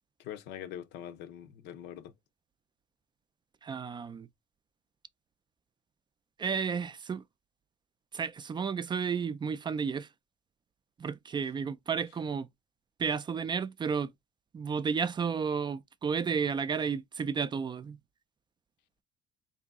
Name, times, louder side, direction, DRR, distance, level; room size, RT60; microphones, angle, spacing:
voice 1, 0.2-2.1, left 10 dB, 85° left, 0.8 m, -43 dB
voice 2, 3.6-4.3 6.4-7.2 8.1-10.1 11.0-12.5 13.0-14.1 14.5-18.0, right 6 dB, 25° right, 0.4 m, -32 dB
3.8 x 2.7 x 3.5 m
cardioid pair, 110°, 17 cm